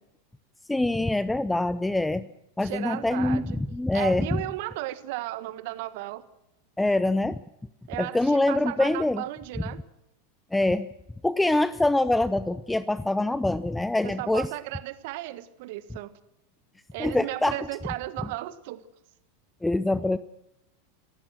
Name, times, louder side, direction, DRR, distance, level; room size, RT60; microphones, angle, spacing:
voice 1, 0.7-2.3 2.6-4.4 6.8-7.4 8.0-9.2 10.5-10.9 11.2-14.5 17.0-17.6 19.6-20.2, left 2 dB, 5° left, 15 dB, 0.7 m, -24 dB
voice 2, 2.6-3.6 3.9-6.2 7.9-9.8 14.0-16.1 16.9-18.8, right 17 dB, 60° right, 13 dB, 1.6 m, -35 dB
28.0 x 15.0 x 6.3 m, 0.88 s
hypercardioid pair, 90°, 0 cm